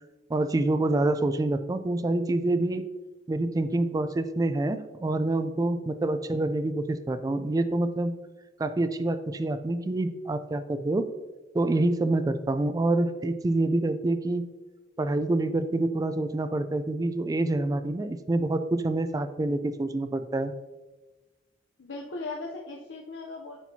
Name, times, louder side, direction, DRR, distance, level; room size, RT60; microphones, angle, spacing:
voice 1, 0.3-2.8 3.3-8.1 8.6-11.1 11.5-14.4 15.0-20.5, right 2 dB, 20° right, 10 dB, 0.3 m, -27 dB
voice 2, 21.8-23.6, left 3 dB, 85° left, -1 dB, 0.7 m, -38 dB
10.0 x 4.5 x 2.8 m, 1.1 s
head